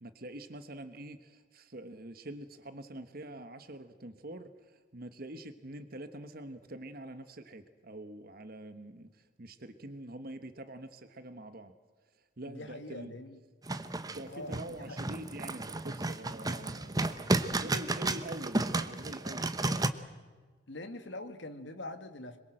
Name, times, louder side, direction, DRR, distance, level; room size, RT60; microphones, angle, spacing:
voice 1, 0.0-11.7 12.4-13.1 14.0-20.0, right 1 dB, 50° right, 10 dB, 1.2 m, -45 dB
voice 2, 12.4-13.4 14.3-15.0 20.7-22.4, left 2 dB, 60° left, 8 dB, 2.0 m, -43 dB
sound 1, 13.7-19.9, right 2 dB, 20° right, 1.0 m, -32 dB
26.0 x 23.0 x 7.7 m, 1.4 s
head